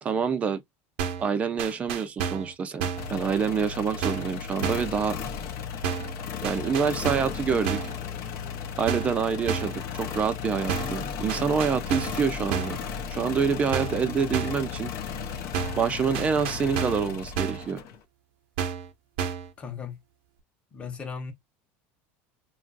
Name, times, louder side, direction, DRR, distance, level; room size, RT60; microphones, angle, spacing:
voice 1, 0.0-0.6 1.2-5.2 6.4-7.8 8.8-12.8 13.1-14.9 15.8-17.8, right 6 dB, 20° right, 0.5 m, -27 dB
sound 1, 1.0-1.3 1.6-2.5 2.8-3.1 4.0-4.3 4.6-4.9 5.8-6.2 6.4-7.4 7.6-8.0 8.9-9.2 9.5-9.8 10.7-11.0 11.3-12.2 12.5-12.8 13.7-14.0 14.3-14.7 15.5-15.9 16.1-17.1 17.4-17.7 18.6-18.9 19.2-19.5, right 7 dB, 75° right, 0.8 m, -31 dB
sound 2, 3.0-18.0, left 7 dB, 50° left, 0.7 m, -35 dB
voice 2, 19.6-20.0 20.7-21.3, left 6 dB, 20° left, 0.9 m, -36 dB
3.0 x 2.5 x 2.5 m
supercardioid pair, 150°, 6 cm